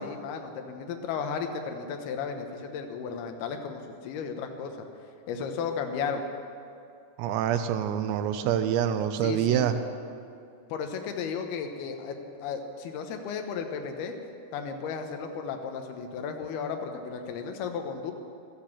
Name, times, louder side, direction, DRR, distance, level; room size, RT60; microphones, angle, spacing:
voice 1, 0.0-4.9 5.3-6.2 9.2-9.7 10.7-12.2 12.4-14.1 14.5-18.1, left 6 dB, 70° left, 5 dB, 2.9 m, -34 dB
voice 2, 7.2-9.8, right 9 dB, 90° right, 8 dB, 3.0 m, -26 dB
13.0 x 13.0 x 7.2 m, 2.5 s
omnidirectional pair, 5.1 m